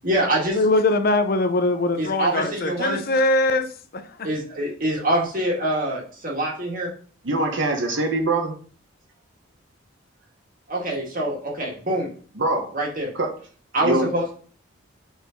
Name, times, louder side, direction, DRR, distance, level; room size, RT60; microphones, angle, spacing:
voice 1, 0.0-0.6 2.0-3.0 4.2-6.9 10.7-12.1 12.7-13.1 13.7-14.3, right 1 dB, 40° right, 1.9 m, -25 dB
voice 2, 0.5-4.0, left 2 dB, 45° left, 0.5 m, -21 dB
voice 3, 7.2-8.5 12.4-12.7 13.1-13.3 13.8-14.0, right 2 dB, 60° right, 1.0 m, -23 dB
4.7 x 4.3 x 5.1 m
head